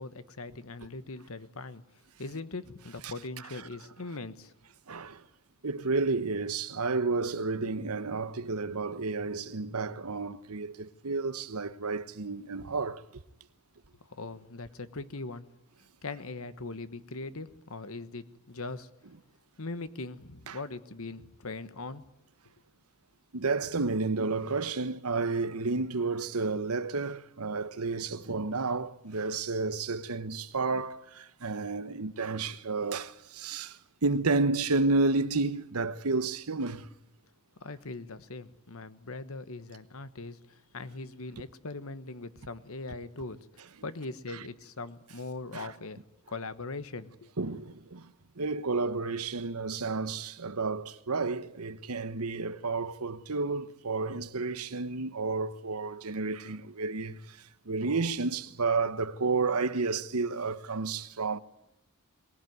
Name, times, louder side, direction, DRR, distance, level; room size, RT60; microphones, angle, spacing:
voice 1, 0.0-1.8 2.2-4.5 14.1-15.5 16.0-18.9 19.6-22.1 37.6-46.0 46.3-47.3, left 3 dB, 70° left, 1.3 m, -40 dB
voice 2, 4.9-5.2 5.6-13.0 20.5-20.6 23.3-36.9 44.3-44.5 45.5-45.7 47.4-57.4 57.7-61.4, right 3 dB, 90° right, 1.1 m, -31 dB
23.0 x 19.5 x 9.5 m
head